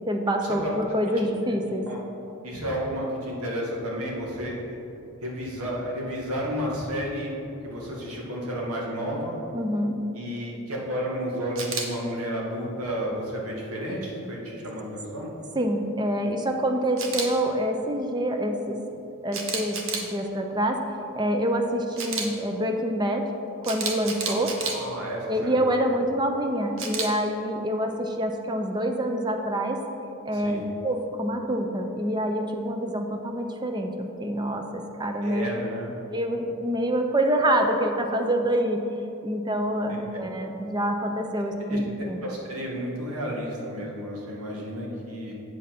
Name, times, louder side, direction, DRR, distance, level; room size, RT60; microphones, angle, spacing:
voice 1, 0.1-1.8 9.5-10.0 15.5-18.8 19.2-19.8 20.1-23.3 23.6-24.5 25.3-29.8 30.3-33.9 34.2-35.5 36.1-38.8 39.2-42.2, equal, 20° right, 4 dB, 0.6 m, -26 dB
voice 2, 2.4-4.6 5.2-7.3 7.6-9.4 10.1-15.3 24.3-24.4 24.7-26.0 30.3-30.6 35.2-35.9 41.7-41.8 42.2-45.3, equal, 90° right, -3 dB, 1.9 m, -32 dB
Camera, 11.6-11.9 17.0-17.3 19.3-20.1 22.0-22.3 23.6-24.7 26.8-27.1, right 5 dB, 60° right, 1.0 m, -30 dB
8.4 x 5.3 x 5.8 m, 2.9 s
head